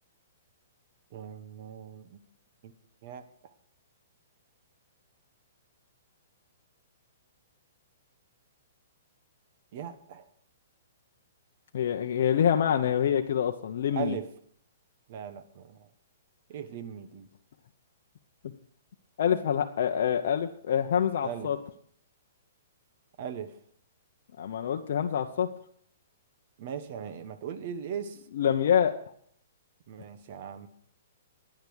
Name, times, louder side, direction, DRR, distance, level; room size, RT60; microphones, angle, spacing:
voice 1, 1.1-2.2 2.6-2.7 3.0-3.2 9.7-10.3 13.9-14.3 15.1-15.9 16.5-17.3 21.2-21.5 23.2-23.5 26.6-28.2 29.9-30.7, right 8 dB, 40° right, 10 dB, 1.1 m, -38 dB
voice 2, 11.7-14.2 19.2-21.6 24.4-25.5 28.3-28.9, left 9 dB, 55° left, 3 dB, 0.8 m, -26 dB
10.5 x 9.8 x 6.4 m, 0.63 s
hypercardioid pair, 170°, 0 cm